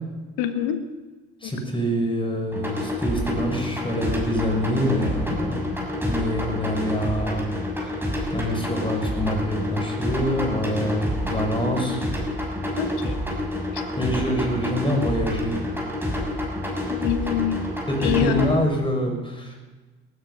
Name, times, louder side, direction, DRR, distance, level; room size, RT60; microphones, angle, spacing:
voice 1, 0.4-0.9 1.4-1.5 11.7-11.8 12.8-13.2 13.7-13.8 16.9-17.6 18.0-18.6, left 10 dB, 75° left, 9 dB, 1.7 m, -26 dB
voice 2, 1.4-5.7 6.0-7.5 7.8-12.0 14.0-15.6 17.9-19.6, equal, 15° left, 2 dB, 6.3 m, -26 dB
sound 1, 2.5-18.5, left 1 dB, 5° right, 6.3 m, -28 dB
19.0 x 13.5 x 5.7 m, 1.2 s
hypercardioid pair, 65°, 32 cm